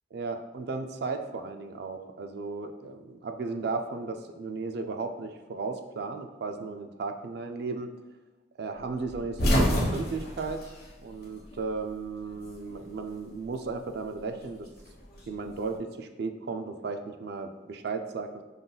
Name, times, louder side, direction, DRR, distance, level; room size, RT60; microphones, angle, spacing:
voice 1, 0.1-7.9 8.6-10.6 11.0-14.7 15.3-18.4, right 4 dB, 60° right, 6 dB, 0.4 m, -35 dB
sound 1, 9.1-11.6 11.9-13.0 14.1-15.6, equal, 55° left, 1.2 m, -28 dB
5.2 x 3.8 x 2.3 m, 1.2 s
head